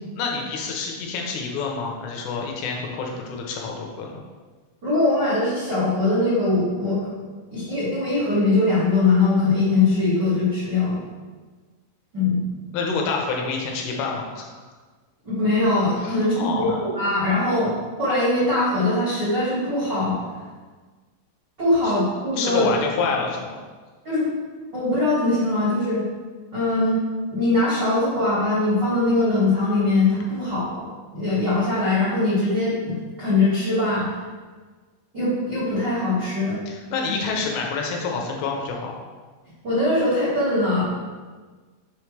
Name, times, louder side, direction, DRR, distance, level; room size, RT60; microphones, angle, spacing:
voice 1, 0.2-4.2 12.7-14.5 16.0-16.8 21.8-21.9 22.4-23.6 36.7-38.9, left 4 dB, 80° left, 0 dB, 3.0 m, -27 dB
voice 2, 4.8-7.0 7.5-11.0 12.1-12.4 15.2-17.7 18.0-20.2 21.6-22.7 24.0-24.2 24.7-26.0 26.5-27.0 27.3-30.8 31.1-34.2 35.1-36.6 39.6-40.9, left 2 dB, 70° right, -12 dB, 1.0 m, -21 dB
6.9 x 4.7 x 3.2 m, 1.4 s
omnidirectional pair, 5.6 m